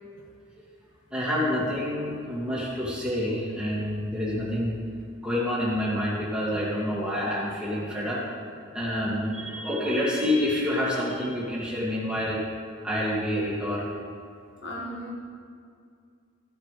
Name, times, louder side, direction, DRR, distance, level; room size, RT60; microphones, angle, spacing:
voice 1, 1.1-4.8 5.2-8.2 8.7-12.4 12.8-13.9, left 1 dB, 5° right, -7 dB, 2.2 m, -28 dB
voice 2, 14.6-15.1, equal, 55° left, -3 dB, 1.7 m, -35 dB
14.5 x 8.8 x 3.3 m, 2.3 s
head